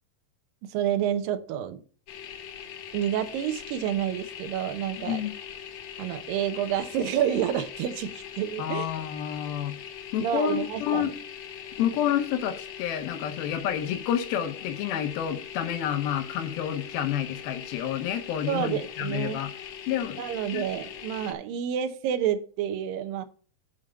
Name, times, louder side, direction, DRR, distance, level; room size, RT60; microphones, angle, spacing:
voice 1, 0.6-1.8 2.9-5.2 6.0-8.9 10.2-11.1 18.5-19.4 20.2-23.3, right 10 dB, 80° right, 2.5 m, -29 dB
sound 1, 2.1-21.3, left 8 dB, 70° left, 1.6 m, -41 dB
voice 2, 5.0-5.3 8.6-9.8 10.1-11.1 11.8-19.5 19.9-20.2 20.5-20.6, left 10 dB, 85° left, 2.7 m, -29 dB
7.3 x 5.0 x 6.5 m
omnidirectional pair, 4.2 m